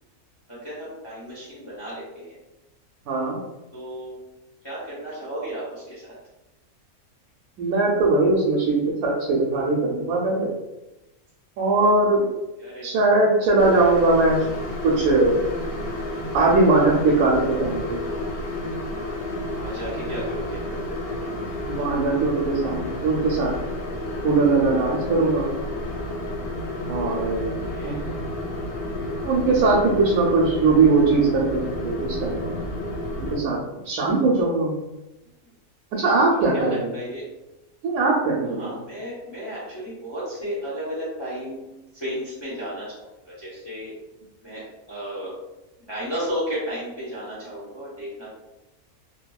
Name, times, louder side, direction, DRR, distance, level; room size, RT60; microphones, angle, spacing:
voice 1, 0.5-2.4 3.7-4.2 4.6-6.1 12.6-12.9 13.7-13.8 19.5-20.6 27.4-28.2 36.3-37.2 38.6-43.9 44.4-45.3 45.9-48.3, equal, 25° left, -8 dB, 0.7 m, -33 dB
voice 2, 3.1-3.4 7.6-10.5 11.6-12.3 12.8-14.5 14.8-15.4 16.3-18.0 21.7-23.5 24.2-25.5 26.9-27.5 27.8-28.0 29.2-32.6 33.2-33.6 33.8-34.7 35.9-36.9 37.8-38.7, right 3 dB, 85° right, -3 dB, 1.1 m, -20 dB
sound 1, 13.6-33.4, left 1 dB, 70° left, 0.5 m, -31 dB
2.7 x 2.6 x 2.3 m, 0.99 s
omnidirectional pair, 1.5 m